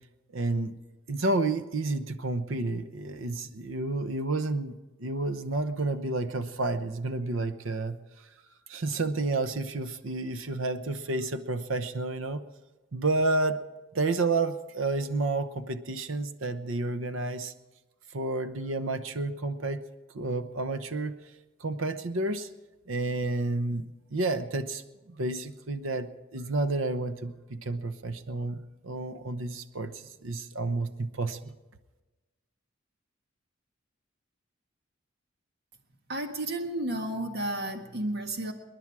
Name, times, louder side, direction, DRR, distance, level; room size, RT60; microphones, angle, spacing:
voice 1, 0.3-0.8 1.1-8.0 8.7-12.4 12.9-13.6 13.9-17.5 18.1-19.8 20.1-21.1 21.6-22.5 22.9-23.9 24.1-24.8 25.1-29.9 30.2-31.5, right 2 dB, 90° right, 10 dB, 0.9 m, -30 dB
voice 2, 36.1-38.5, right 1 dB, 55° right, 4 dB, 1.6 m, -32 dB
27.5 x 11.0 x 4.8 m, 1.2 s
head